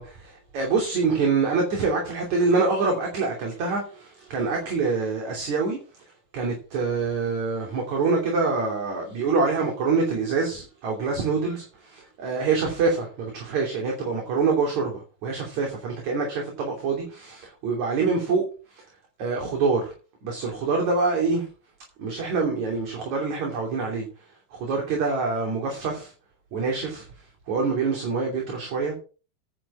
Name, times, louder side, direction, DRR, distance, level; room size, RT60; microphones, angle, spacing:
voice 1, 0.0-5.8 6.3-18.4 18.7-18.8 19.2-19.9 20.2-21.5 22.0-24.1 24.5-26.1 26.5-27.1 27.5-29.0, right 4 dB, 50° right, 4.1 m, -25 dB
10.0 x 7.9 x 6.1 m
omnidirectional pair, 4.3 m